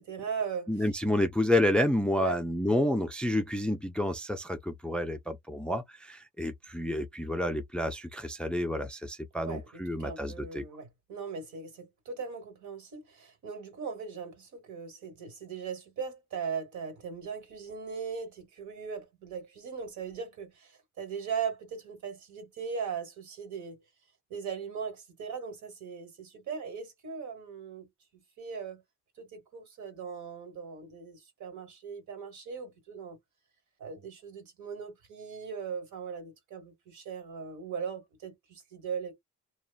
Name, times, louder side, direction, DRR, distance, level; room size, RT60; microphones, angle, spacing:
voice 1, 0.0-0.7 2.2-2.4 9.4-23.8 24.3-27.9 28.4-28.8 29.2-33.2 33.8-39.1, right 6 dB, 75° right, 1.5 m, -39 dB
voice 2, 0.7-10.6, left 1 dB, 5° left, 0.3 m, -29 dB
2.9 x 2.3 x 2.3 m
cardioid pair, 90°, 30 cm